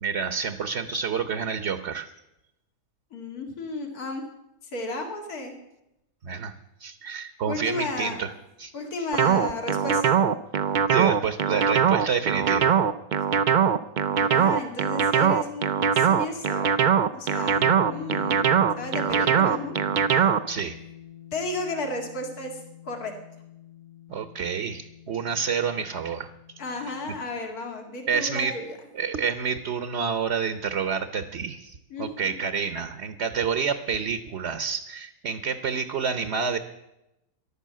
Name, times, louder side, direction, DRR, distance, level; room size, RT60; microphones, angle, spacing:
voice 1, 0.0-2.1 6.2-6.5 6.8-8.3 8.6-8.7 10.9-12.8 20.5-20.7 24.1-26.3 26.8-26.9 28.1-28.5 28.9-36.6, right 6 dB, 50° right, 11 dB, 1.0 m, -28 dB
voice 2, 3.1-4.2 4.6-5.5 7.4-8.2 8.7-10.2 14.1-18.5 18.8-19.7 21.3-23.1 26.6-28.7 31.9-32.3, left 2 dB, 75° left, 3 dB, 2.6 m, -33 dB
sound 1, 9.1-20.6, right 7 dB, 70° right, 0.4 m, -21 dB
sound 2, 17.6-27.3, left 9 dB, 30° left, 1.1 m, -44 dB
14.0 x 11.5 x 7.4 m, 0.89 s
omnidirectional pair, 1.6 m